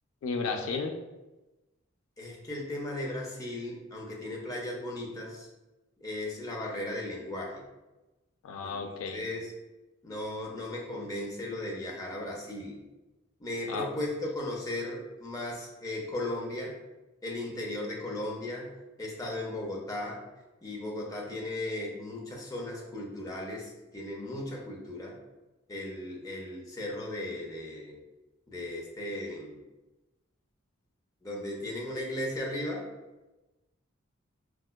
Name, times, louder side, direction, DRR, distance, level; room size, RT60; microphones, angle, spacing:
voice 1, 0.2-1.0 8.4-9.2 13.7-13.9, left 4 dB, 75° left, 4 dB, 0.3 m, -33 dB
voice 2, 2.2-5.5 6.0-7.6 8.6-9.5 10.0-12.8 13.4-16.7 17.2-18.7 19.0-20.2 20.6-25.2 25.7-28.0 28.5-29.6 31.2-32.9, left 1 dB, 15° left, -1 dB, 0.5 m, -36 dB
4.5 x 2.1 x 2.2 m, 1.1 s
head